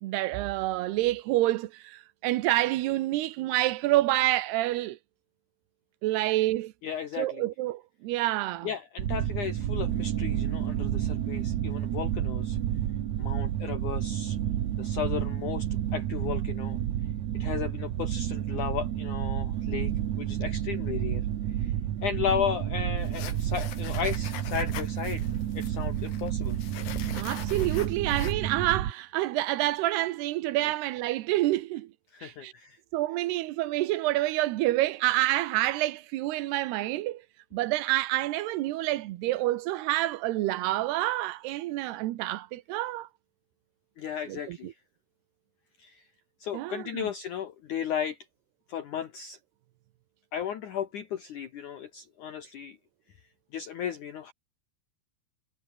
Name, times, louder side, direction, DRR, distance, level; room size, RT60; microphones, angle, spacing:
voice 1, 0.0-5.0 6.0-6.7 7.2-8.7 27.1-31.9 32.2-32.5 32.9-37.2 37.5-43.1 44.3-44.7 46.5-47.1, right 16 dB, 85° right, 3.0 m, -28 dB
voice 2, 6.8-7.4 8.6-12.6 13.2-14.4 14.8-16.8 17.4-19.9 20.2-21.3 21.6-21.7 22.0-25.3 25.6-26.6 30.6-30.7 32.1-32.8 44.0-44.7 45.8-46.0 46.4-48.2 48.7-49.4 50.3-52.8 53.5-54.3, left 8 dB, 60° left, 2.6 m, -34 dB
sound 1, 9.0-28.9, right 11 dB, 60° right, 2.1 m, -30 dB
sound 2, 23.0-28.3, left 10 dB, 90° left, 4.6 m, -43 dB
omnidirectional pair, 4.7 m